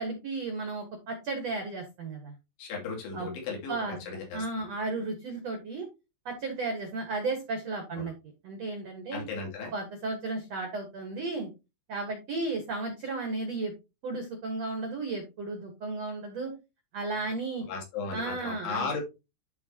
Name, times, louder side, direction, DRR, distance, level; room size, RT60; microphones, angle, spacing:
voice 1, 0.0-2.3 3.1-3.3 3.7-5.9 6.3-8.1 8.4-9.2 9.7-11.5 11.9-13.7 14.0-16.5 16.9-17.7 18.1-18.9, right 3 dB, 60° right, 5 dB, 1.8 m, -34 dB
voice 2, 2.6-4.4 8.0-8.1 9.1-9.7 17.7-19.0, left 4 dB, 70° left, -2 dB, 4.8 m, -35 dB
12.5 x 4.7 x 2.9 m, 0.26 s
omnidirectional pair, 5.1 m